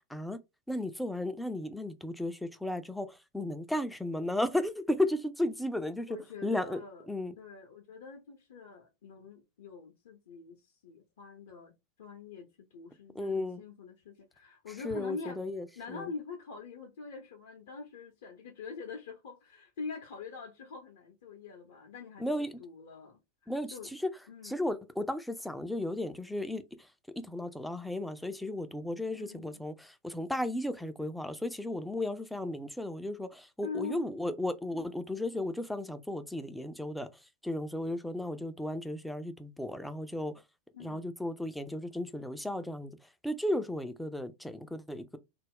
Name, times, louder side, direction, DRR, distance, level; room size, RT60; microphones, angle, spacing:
voice 1, 0.7-6.1 6.4-6.8 7.1-7.3 13.2-13.6 14.8-15.6 15.9-16.0 22.2-22.5 23.5-24.1 24.4-26.6 27.3-37.1 37.4-40.3 40.8-43.0 43.2-45.2, left 1 dB, ahead, 0.3 m, -34 dB
voice 2, 6.1-7.1 7.4-11.7 12.0-15.4 15.8-23.9 24.3-24.7 29.1-29.6 33.6-34.4 34.7-34.9 40.7-41.1, left 5 dB, 60° left, 0.5 m, -45 dB
2.3 x 2.0 x 3.5 m
figure-of-eight pair, 90°, 0 cm